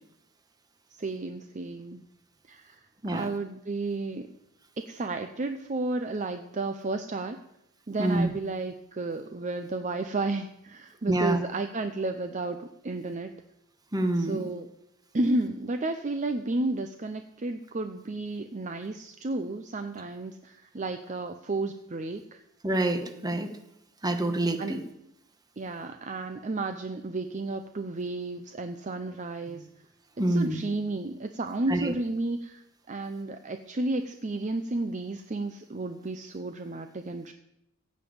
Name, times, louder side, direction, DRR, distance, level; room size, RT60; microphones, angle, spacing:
voice 1, 0.9-2.0 2.5-4.3 4.8-7.4 7.9-13.3 14.1-14.7 15.1-22.4 24.6-24.7 25.6-29.7 30.3-37.3, right 2 dB, 35° right, 7 dB, 0.6 m, -32 dB
voice 2, 8.0-8.3 11.1-11.4 13.9-14.4 22.6-23.5 24.0-24.8 30.2-30.5 31.7-31.9, right 1 dB, 20° right, 7 dB, 1.1 m, -26 dB
15.5 x 5.3 x 8.7 m, 0.83 s
head